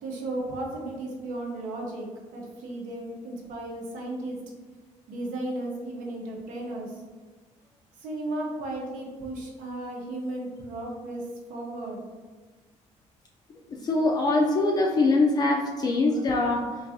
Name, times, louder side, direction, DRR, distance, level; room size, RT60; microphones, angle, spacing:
voice 1, 0.0-4.4 5.1-7.0 8.0-12.1, right 1 dB, 85° right, -1 dB, 0.8 m, -35 dB
voice 2, 13.7-16.8, left 2 dB, 30° left, -1 dB, 0.3 m, -23 dB
3.8 x 2.5 x 2.7 m, 1.4 s
cardioid pair, 140°, 13 cm